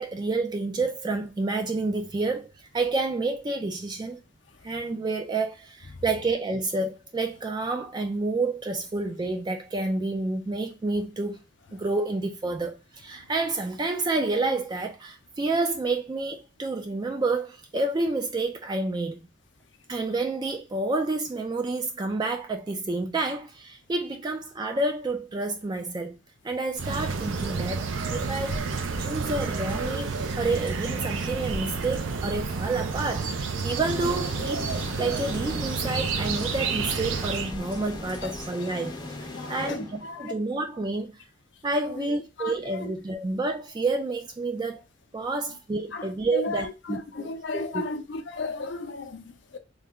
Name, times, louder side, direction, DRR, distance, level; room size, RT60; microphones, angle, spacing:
voice 1, 0.0-4.2 4.6-11.4 11.7-19.2 19.9-26.2 26.4-28.6 29.0-34.7 35.0-38.9 39.5-41.2 41.6-44.8 45.1-47.9, right 3 dB, 20° right, 0.3 m, -29 dB
sound 1, 26.8-38.5, left 1 dB, 65° right, 1.4 m, -40 dB
sound 2, 26.8-37.5, right 5 dB, 85° right, 0.5 m, -30 dB
sound 3, 33.7-40.5, left 2 dB, 25° left, 0.6 m, -39 dB
voice 2, 39.3-40.3 42.0-42.1 42.4-42.9 45.9-49.6, left 3 dB, 65° left, 0.6 m, -35 dB
3.3 x 2.1 x 3.6 m
head